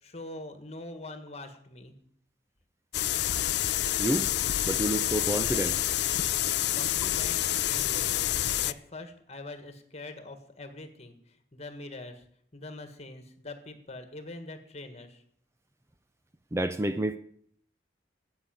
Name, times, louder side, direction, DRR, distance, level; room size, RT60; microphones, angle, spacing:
voice 1, 0.0-1.9 6.7-8.3 8.6-12.2 12.5-15.2, left 2 dB, 35° left, 1.7 m, -43 dB
sound 1, 2.9-8.7, left 13 dB, 65° left, 0.4 m, -28 dB
voice 2, 4.0-4.3 4.7-5.8 16.5-17.2, right 1 dB, 15° right, 0.4 m, -29 dB
10.0 x 8.2 x 9.1 m
head